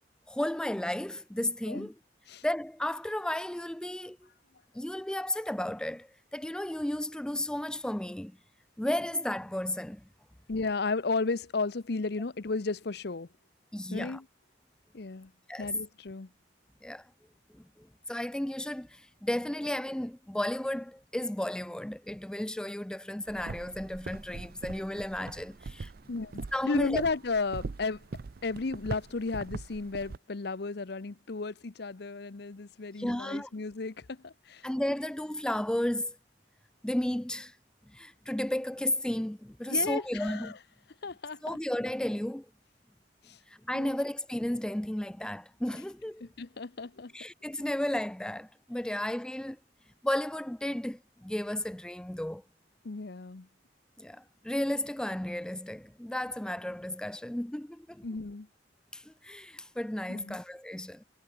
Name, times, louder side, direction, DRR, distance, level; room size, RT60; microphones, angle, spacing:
voice 1, 0.3-1.9 2.4-4.2 4.7-8.3 8.8-10.0 13.7-14.2 15.5-15.7 16.8-17.0 17.8-25.9 26.5-27.0 33.0-33.5 34.6-36.2 36.8-37.5 37.9-40.5 41.4-42.5 43.5-46.2 47.1-49.6 50.0-52.4 54.0-58.0 58.9-61.0, left 1 dB, 5° left, 0.3 m, -33 dB
voice 2, 10.5-13.3 13.9-14.3 14.9-15.3 15.6-16.3 26.1-28.0 28.4-34.6 39.7-40.6 41.0-41.6 43.3-43.4 43.7-44.0 46.2-47.1 52.8-53.5 58.0-58.5 60.1-60.4, left 3 dB, 60° left, 0.8 m, -34 dB
sound 1, 23.2-30.2, right 3 dB, 55° right, 0.5 m, -42 dB
head